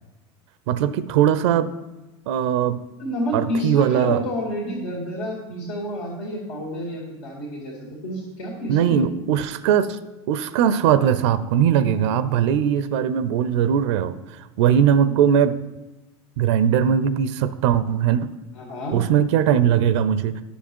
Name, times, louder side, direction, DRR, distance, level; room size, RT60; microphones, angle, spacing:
voice 1, 0.7-1.7 2.3-2.8 3.3-4.2 8.7-10.0 10.3-14.1 14.6-15.6 16.4-18.3 18.9-20.4, right 9 dB, 70° right, 14 dB, 0.5 m, -20 dB
voice 2, 3.0-9.2 15.0-15.2 18.5-19.0, equal, 75° left, -2 dB, 2.3 m, -29 dB
10.0 x 6.6 x 4.5 m, 1.0 s
hypercardioid pair, 85°, 15 cm